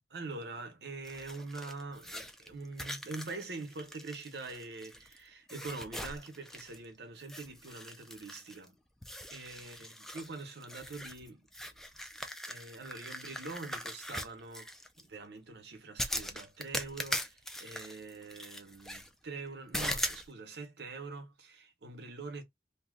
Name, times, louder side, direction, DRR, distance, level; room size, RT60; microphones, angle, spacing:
voice 1, 0.1-8.8 9.3-11.5 11.9-12.0 12.5-22.4, right 3 dB, 70° right, 0.8 m, -44 dB
sound 1, 1.1-5.2 5.5-6.9 7.2-8.7 9.0-15.0 16.0-19.1 19.7-20.3, equal, 5° left, 0.3 m, -41 dB
2.7 x 2.1 x 3.6 m
head